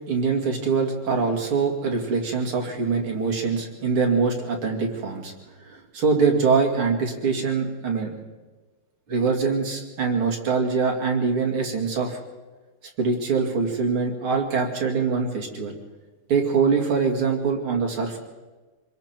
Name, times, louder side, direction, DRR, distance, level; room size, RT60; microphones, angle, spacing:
voice 1, 0.1-5.3 5.6-8.1 9.1-12.2 13.0-15.7 16.3-18.2, right 5 dB, 80° right, 1 dB, 3.4 m, -23 dB
26.0 x 22.0 x 4.5 m, 1.3 s
omnidirectional pair, 2.3 m